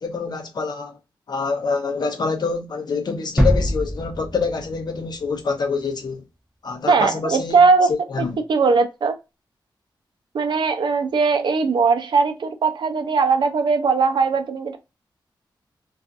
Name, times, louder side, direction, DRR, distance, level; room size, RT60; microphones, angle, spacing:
voice 1, 0.0-1.0 1.3-6.2 6.6-7.6 7.9-8.4, left 4 dB, 60° left, 0.6 m, -26 dB
sound 1, 3.4-6.0, equal, ahead, 0.6 m, -24 dB
voice 2, 6.9-7.9 8.5-9.1 10.3-14.8, right 4 dB, 70° right, 0.5 m, -19 dB
2.4 x 2.4 x 2.4 m
wide cardioid pair, 110°, 8 cm